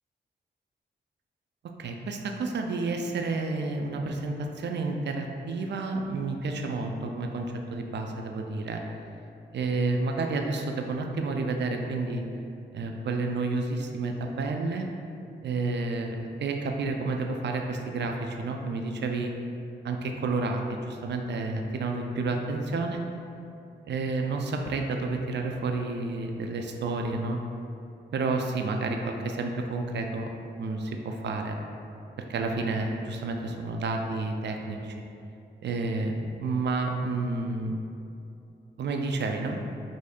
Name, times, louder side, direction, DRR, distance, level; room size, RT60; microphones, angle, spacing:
voice 1, 1.8-8.8 9.5-12.2 12.7-14.9 15.4-19.3 19.8-23.0 23.9-27.4 28.1-30.3 30.6-31.6 32.3-35.0 35.6-37.8 38.8-39.6, right 3 dB, 65° right, 3 dB, 0.4 m, -30 dB
4.8 x 2.6 x 2.3 m, 2.6 s
cardioid pair, 50°, 19 cm